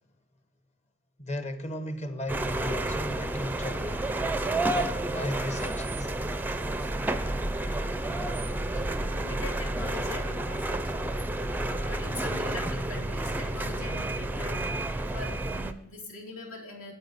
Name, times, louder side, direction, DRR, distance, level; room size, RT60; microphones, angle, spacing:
voice 1, 1.2-4.0 4.7-6.1, left 1 dB, 30° left, 0.9 m, -36 dB
sound 1, 2.3-15.7, right 2 dB, 10° right, 0.4 m, -30 dB
voice 2, 4.4-4.9 6.5-6.9 7.5-8.2 8.6-16.9, left 2 dB, 75° left, 3.0 m, -43 dB
9.0 x 8.2 x 4.0 m
head